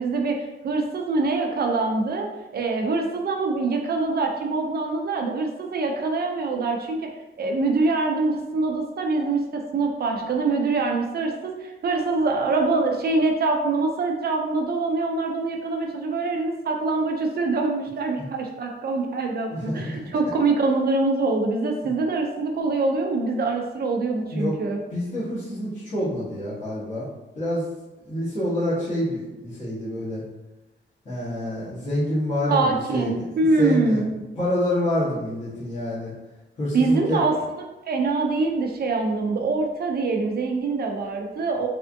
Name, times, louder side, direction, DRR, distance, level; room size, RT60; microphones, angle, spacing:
voice 1, 0.0-7.1 7.4-24.8 32.5-34.1 36.7-37.3 37.9-41.7, right 3 dB, 55° right, 2 dB, 0.5 m, -24 dB
voice 2, 19.5-20.0 21.8-21.9 24.3-24.6 24.9-27.1 27.3-27.7 28.0-30.2 31.0-33.1 33.6-34.1 34.3-36.1 36.6-37.2, left 1 dB, 40° left, -12 dB, 1.3 m, -27 dB
3.4 x 3.4 x 2.6 m, 1.1 s
wide cardioid pair, 175°, 20 cm